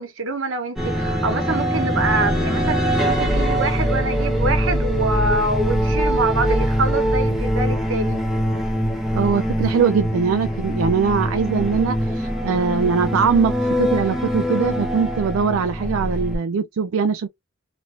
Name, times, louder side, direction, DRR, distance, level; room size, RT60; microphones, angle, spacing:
voice 1, 0.0-8.2, right 2 dB, 65° right, 0.9 m, -25 dB
sound 1, 0.8-16.4, equal, ahead, 0.7 m, -22 dB
voice 2, 9.1-17.3, right 6 dB, 80° right, 0.4 m, -21 dB
3.1 x 2.3 x 2.5 m
head